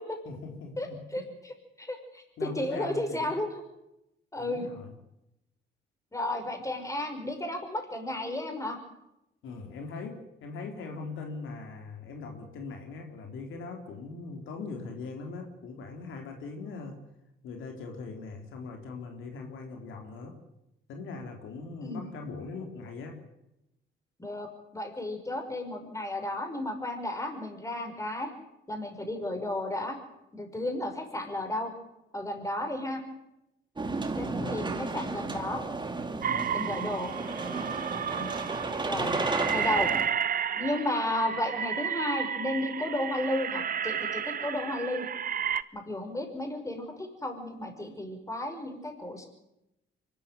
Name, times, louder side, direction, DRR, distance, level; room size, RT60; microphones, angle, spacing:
voice 1, 0.2-1.0 2.4-3.3 4.4-4.9 9.4-17.0 17.4-20.4 20.9-23.2 34.4-34.6 36.3-36.7 38.9-39.2, left 4 dB, 80° left, 3 dB, 4.0 m, -40 dB
voice 2, 1.1-3.5 4.3-4.7 6.1-8.8 21.8-22.0 24.2-24.5 24.7-28.3 28.7-30.0 30.3-31.7 32.1-33.0 34.2-35.6 36.5-37.1 38.2-38.3 38.9-39.1 39.5-39.9 40.6-45.1 45.7-49.3, left 1 dB, 15° left, 4 dB, 5.7 m, -33 dB
sound 1, 33.8-40.1, right 3 dB, 25° right, 2.6 m, -33 dB
sound 2, 36.2-45.6, right 8 dB, 45° right, 0.9 m, -32 dB
24.5 x 13.5 x 9.4 m, 0.87 s
cardioid pair, 90°, 20 cm